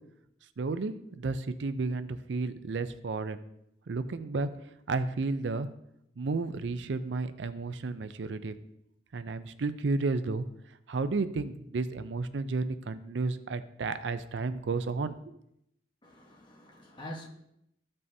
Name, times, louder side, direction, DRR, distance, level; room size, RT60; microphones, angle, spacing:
voice 1, 0.6-3.4 3.9-4.5 4.9-5.7 6.2-8.5 9.1-10.5 10.9-15.2, right 3 dB, 75° right, 0.5 m, -32 dB
voice 2, 16.0-17.3, equal, 25° left, 1.2 m, -45 dB
13.5 x 5.4 x 2.7 m
head